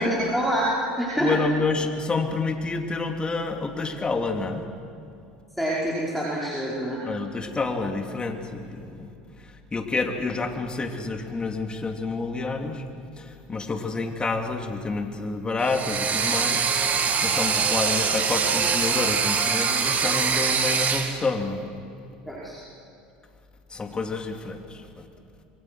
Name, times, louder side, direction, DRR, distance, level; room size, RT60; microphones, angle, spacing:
voice 1, 0.0-1.3 5.6-7.0 22.3-22.6, equal, ahead, -6 dB, 5.4 m, -26 dB
voice 2, 1.2-4.6 7.0-9.1 9.4-12.8 13.2-16.7 17.2-21.6 23.7-25.0, left 3 dB, 20° left, 4 dB, 2.9 m, -28 dB
sound 1, 15.6-21.2, right 6 dB, 40° right, 2.6 m, -24 dB
26.5 x 23.0 x 6.4 m, 2.6 s
hypercardioid pair, 85°, 4 cm